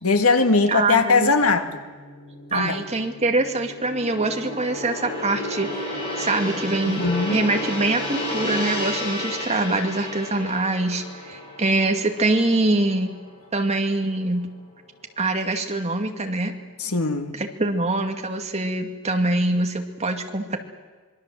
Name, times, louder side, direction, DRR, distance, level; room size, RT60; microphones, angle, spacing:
voice 1, 0.0-1.8 2.5-2.8 6.9-7.4 16.8-17.4, left 4 dB, 75° left, 7 dB, 2.1 m, -20 dB
voice 2, 0.7-1.3 2.5-7.0 7.3-13.1 13.5-14.5 15.2-16.5 17.3-20.6, right 2 dB, 30° right, 4 dB, 2.3 m, -24 dB
Gong, 1.6-14.0 14.3-14.6, left 1 dB, 25° left, 7.8 m, -32 dB
26.0 x 23.0 x 7.6 m, 1.4 s
head